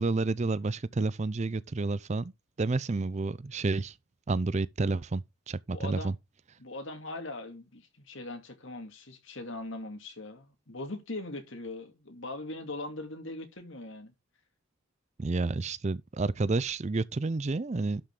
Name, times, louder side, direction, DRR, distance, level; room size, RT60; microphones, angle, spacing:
voice 1, 0.0-2.3 2.6-3.9 4.3-6.1 15.2-18.0, right 3 dB, 30° right, 0.4 m, -30 dB
voice 2, 5.7-6.1 6.6-14.1, left 2 dB, 60° left, 2.5 m, -40 dB
12.0 x 5.8 x 3.8 m
head